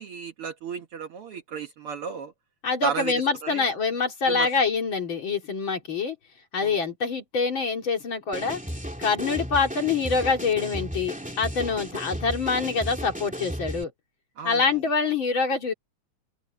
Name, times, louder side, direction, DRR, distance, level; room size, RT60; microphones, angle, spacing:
voice 1, 0.0-2.3 2.8-3.6 4.3-4.5 6.6-6.7 14.4-14.6, right 7 dB, 60° right, 1.8 m, -34 dB
voice 2, 2.6-6.2 6.5-8.6 9.0-13.9 14.4-15.7, left 4 dB, 45° left, 3.0 m, -25 dB
sound 1, 8.3-13.8, equal, 5° right, 2.2 m, -35 dB
open air
omnidirectional pair, 3.3 m